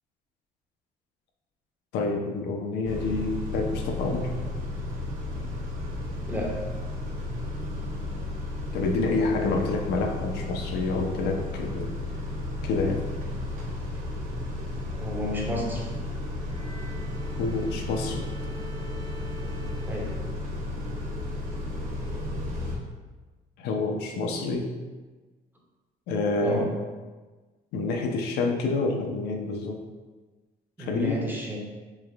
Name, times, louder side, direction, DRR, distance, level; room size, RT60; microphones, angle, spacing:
voice 1, 1.9-4.3 8.7-11.9 12.6-13.0 17.4-18.3 23.6-24.7 26.1-26.7 27.7-29.8 30.8-31.2, left 3 dB, 80° left, 3 dB, 0.5 m, -28 dB
Car / Idling / Accelerating revving vroom, 2.8-22.8, left 2 dB, 55° right, 0.8 m, -33 dB
voice 2, 6.3-6.7 14.9-15.9 19.9-20.2 26.4-26.7 30.8-31.7, left 1 dB, 10° right, -1 dB, 0.6 m, -31 dB
Bowed string instrument, 16.4-20.9, left 2 dB, 30° left, 0.6 m, -47 dB
3.3 x 3.2 x 2.4 m, 1.3 s
cardioid pair, 110°, 17 cm